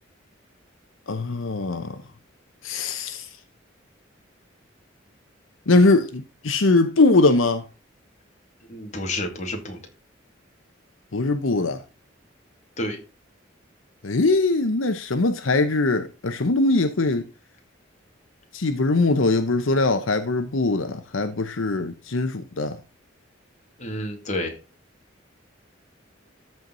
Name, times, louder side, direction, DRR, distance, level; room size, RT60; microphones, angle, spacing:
voice 1, 1.1-2.0 2.6-3.3 5.7-7.6 11.1-11.8 14.0-17.3 18.5-22.8, left 3 dB, 85° left, 0.9 m, -21 dB
voice 2, 8.7-9.8 12.8-13.0 23.8-24.6, left 1 dB, 35° left, 2.4 m, -30 dB
13.5 x 4.6 x 3.9 m
head